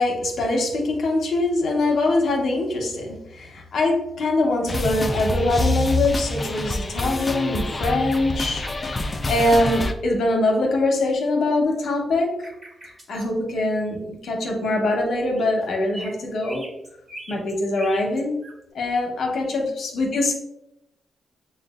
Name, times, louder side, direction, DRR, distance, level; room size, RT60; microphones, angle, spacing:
voice 1, 0.0-12.3 13.1-16.6 17.3-18.3 18.7-20.3, left 2 dB, 70° left, 1 dB, 0.8 m, -23 dB
sound 1, 4.7-9.9, left 1 dB, 30° left, 0.4 m, -26 dB
sound 2, 12.4-13.3 15.2-15.6 15.9-18.5, right 1 dB, 35° right, 1.2 m, -40 dB
6.4 x 2.2 x 2.4 m, 0.83 s
cardioid pair, 70°, 0 cm